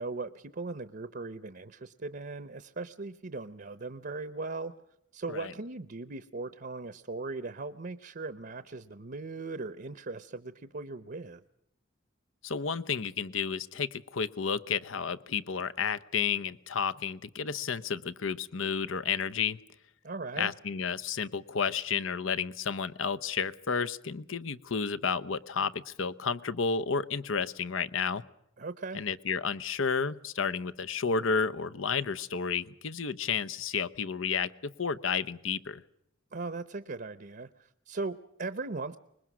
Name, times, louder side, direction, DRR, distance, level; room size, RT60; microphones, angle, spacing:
voice 1, 0.0-4.7 5.1-11.4 20.0-20.5 28.6-29.0 36.3-39.0, right 3 dB, 50° right, 13 dB, 0.8 m, -38 dB
voice 2, 12.4-19.6 20.4-28.2 28.9-35.8, left 6 dB, 75° left, 13 dB, 0.8 m, -31 dB
25.0 x 21.0 x 6.2 m, 0.79 s
head